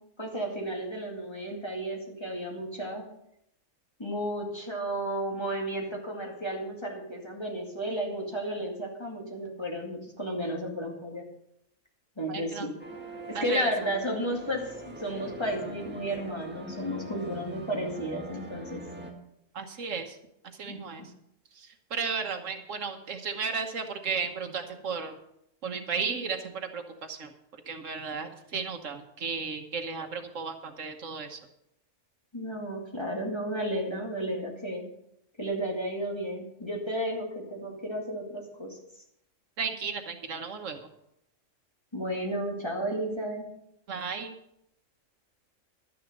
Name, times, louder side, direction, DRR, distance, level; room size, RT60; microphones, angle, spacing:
voice 1, 0.2-3.1 4.0-11.3 12.2-12.7 13.3-18.8 20.7-21.1 32.3-34.8 35.4-38.8 41.9-43.5, right 1 dB, 20° left, -1 dB, 2.3 m, -33 dB
voice 2, 12.3-12.7 13.3-13.7 19.5-20.2 20.6-21.0 21.5-25.2 25.6-27.3 27.7-31.4 39.6-40.9 43.9-44.3, right 5 dB, 75° right, 6 dB, 1.5 m, -34 dB
sound 1, 12.8-19.1, right 2 dB, 10° right, 1.6 m, -43 dB
11.5 x 10.0 x 5.2 m, 0.77 s
omnidirectional pair, 1.3 m